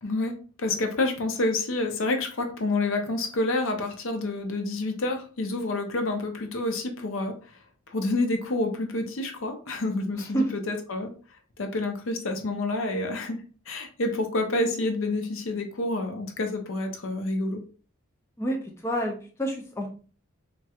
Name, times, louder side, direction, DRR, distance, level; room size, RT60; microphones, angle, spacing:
voice 1, 0.0-7.6 7.9-11.1 11.6-17.6, left 2 dB, 65° left, 5 dB, 0.6 m, -28 dB
voice 2, 18.4-19.9, right 1 dB, 15° left, 1 dB, 0.4 m, -28 dB
4.1 x 2.3 x 2.3 m, 0.38 s
head